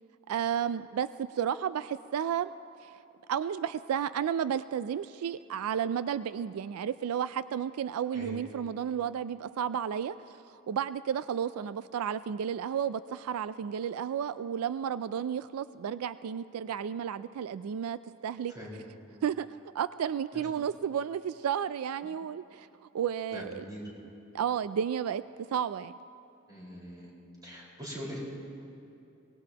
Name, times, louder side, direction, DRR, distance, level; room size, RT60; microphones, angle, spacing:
voice 1, 0.3-2.5 2.8-3.0 3.3-10.2 10.5-18.5 19.2-22.7 22.9-23.6 24.3-25.9, right 8 dB, 80° right, 14 dB, 0.3 m, -32 dB
voice 2, 23.3-23.8 26.5-27.1 27.4-28.2, equal, 20° right, -5 dB, 4.7 m, -42 dB
23.5 x 19.0 x 2.9 m, 2.8 s
head